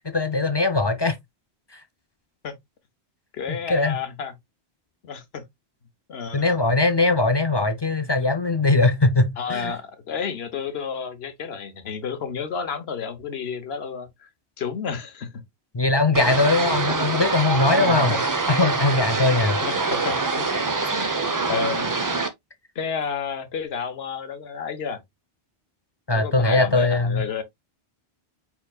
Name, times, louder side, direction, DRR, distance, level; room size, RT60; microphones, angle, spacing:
voice 1, 0.1-1.2 1.7-1.8 3.5-4.0 6.3-9.7 15.7-18.1 18.5-19.6 26.1-27.3, left 2 dB, 45° left, 0.3 m, -21 dB
voice 2, 3.3-4.3 5.0-5.4 6.1-6.6 9.4-14.3 14.6-15.4 17.8-18.2 19.6-20.5 20.8-21.1 21.5-22.0 22.7-25.0 26.1-27.4, left 6 dB, 70° left, 1.1 m, -31 dB
sound 1, 16.1-22.3, right 3 dB, 25° right, 0.5 m, -25 dB
4.9 x 4.6 x 2.3 m
omnidirectional pair, 1.1 m